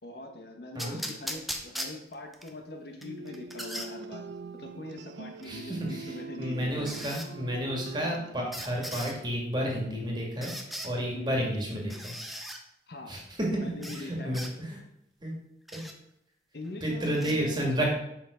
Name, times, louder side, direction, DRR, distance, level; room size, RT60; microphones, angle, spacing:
voice 1, 0.0-4.3 4.5-7.0 11.1-11.4 12.9-13.1 13.5-14.4 16.5-17.9, left 2 dB, 60° left, 4 dB, 1.1 m, -42 dB
sound 1, 0.8-2.5 3.0-3.9 5.4-5.5 6.9-7.3 8.5-9.2 10.4-10.9 11.9-12.6 13.8-14.0 14.3-14.5 15.7-15.9 17.1-17.3, equal, ahead, 0.6 m, -38 dB
sound 2, 3.0-8.6, right 4 dB, 80° right, 0.4 m, -43 dB
voice 2, 5.4-10.5 10.8-12.1 13.1-14.8 15.2-15.4 15.7-15.8 16.8-17.9, equal, 25° right, -1 dB, 1.9 m, -31 dB
7.1 x 5.6 x 5.0 m, 0.80 s
head